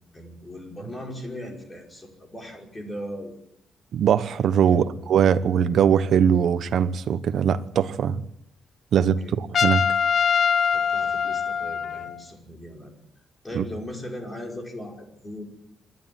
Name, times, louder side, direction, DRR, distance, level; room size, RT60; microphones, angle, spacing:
voice 1, 0.1-3.3 4.7-5.0 9.0-9.4 10.7-12.9 13.4-15.4, left 1 dB, 20° left, 5.2 m, -38 dB
voice 2, 3.9-8.2 8.9-9.8 13.5-13.6, right 8 dB, 65° right, 1.1 m, -21 dB
Trumpet, 9.5-12.2, left 7 dB, 50° left, 0.9 m, -23 dB
26.0 x 11.5 x 9.3 m
cardioid pair, 130°, 0 cm